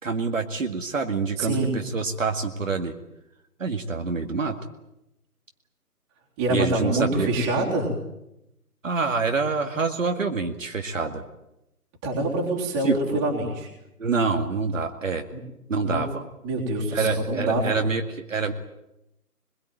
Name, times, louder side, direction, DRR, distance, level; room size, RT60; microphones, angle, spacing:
voice 1, 0.0-2.9 3.6-4.6 6.5-7.3 8.8-11.2 12.8-13.2 14.0-15.3 15.7-16.2 16.9-18.5, right 4 dB, 55° right, 5 dB, 2.2 m, -26 dB
voice 2, 1.4-1.8 6.4-7.9 12.0-13.7 15.3-15.4 15.8-16.1 16.4-17.8, right 2 dB, 10° right, -2 dB, 3.4 m, -26 dB
24.0 x 21.5 x 9.2 m, 0.87 s
figure-of-eight pair, 170°, 46 cm